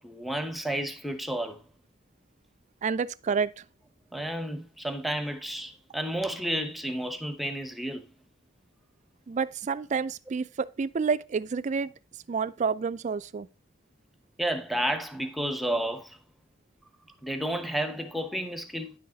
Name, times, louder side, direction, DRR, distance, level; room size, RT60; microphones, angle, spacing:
voice 1, 0.0-1.6 4.1-8.1 14.4-16.2 17.2-18.9, right 1 dB, ahead, 0.9 m, -31 dB
voice 2, 2.8-3.6 9.3-11.9 12.3-13.5, right 5 dB, 40° right, 0.4 m, -29 dB
10.0 x 6.2 x 3.9 m
head